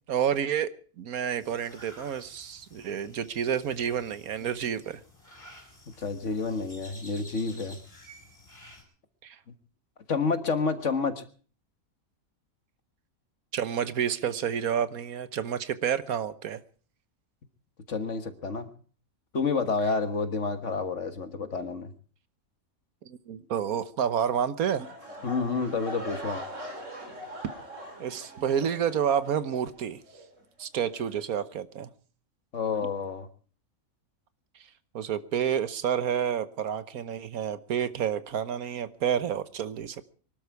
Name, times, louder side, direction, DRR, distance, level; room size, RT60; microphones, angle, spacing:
voice 1, 0.1-0.7 1.0-5.0 9.2-9.4 13.5-16.6 23.1-24.9 28.0-30.0 30.6-31.9 34.9-40.0, right 8 dB, 90° right, 13 dB, 1.5 m, -29 dB
sound 1, 1.4-8.8, left 1 dB, 20° left, 4.9 m, -52 dB
voice 2, 6.0-7.8 10.1-11.2 17.9-18.7 19.3-21.9 25.2-26.4 32.5-33.3, left 4 dB, 60° left, 9 dB, 1.8 m, -29 dB
sound 2, 24.8-29.8 30.1-30.4 30.9-31.0, equal, 60° right, 4.3 m, -41 dB
23.5 x 12.5 x 4.7 m, 0.43 s
omnidirectional pair, 1.5 m